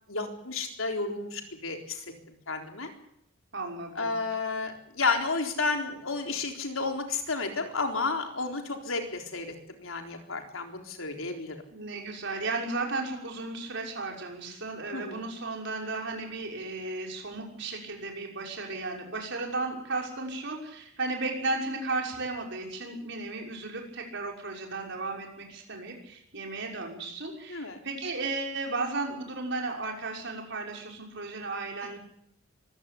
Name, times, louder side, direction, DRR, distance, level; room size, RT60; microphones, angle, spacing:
voice 1, 0.1-2.9 4.0-11.6 14.9-15.2 27.5-27.8, left 3 dB, 85° left, 4 dB, 3.9 m, -32 dB
voice 2, 3.5-4.2 11.7-32.0, right 3 dB, 60° right, 1 dB, 6.1 m, -34 dB
23.5 x 16.0 x 8.5 m, 0.73 s
head